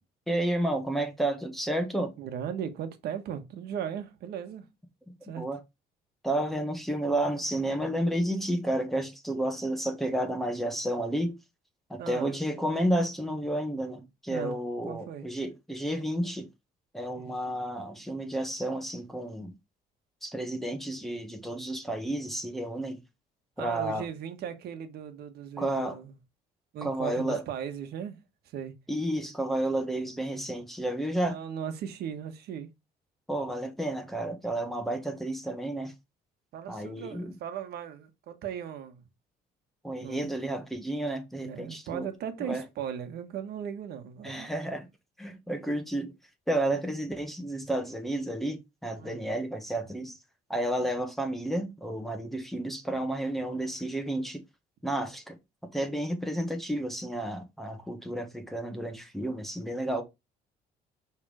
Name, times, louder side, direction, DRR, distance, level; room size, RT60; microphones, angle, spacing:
voice 1, 0.3-2.1 5.4-5.6 6.2-11.3 11.9-16.5 16.9-19.5 20.2-23.0 23.6-24.0 25.6-26.0 26.8-27.4 28.9-31.4 33.3-35.9 36.7-37.3 39.8-42.1 42.4-42.6 44.2-44.9 45.2-46.1 46.5-50.2 50.5-54.4 54.8-55.4 55.7-60.0, right 1 dB, ahead, 1.4 m, -31 dB
voice 2, 2.2-4.7 5.2-5.4 12.0-12.4 14.3-14.6 14.9-15.3 17.2-17.3 23.6-26.2 26.7-28.2 28.4-28.7 31.2-32.7 36.5-39.0 40.0-40.3 41.4-44.5 49.0-49.2, right 9 dB, 70° right, 1.4 m, -37 dB
6.2 x 3.6 x 4.9 m
cardioid pair, 110°, 17 cm